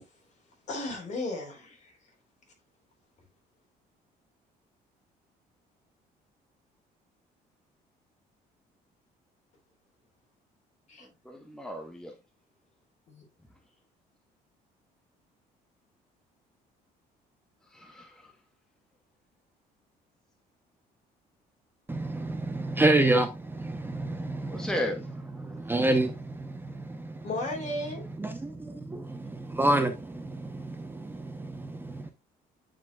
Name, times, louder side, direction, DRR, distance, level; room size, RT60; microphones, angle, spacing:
voice 1, 0.7-1.9 10.9-11.1 13.1-13.2 27.2-28.0, left 2 dB, 45° left, 3.7 m, -34 dB
voice 2, 11.0-12.2 17.6-18.3 24.5-25.1 25.7-25.9, left 1 dB, 5° left, 1.0 m, -36 dB
voice 3, 21.9-24.7 25.4-27.2 28.2-32.1, right 2 dB, 10° right, 0.8 m, -29 dB
9.0 x 5.1 x 2.3 m
cardioid pair, 110°, 17 cm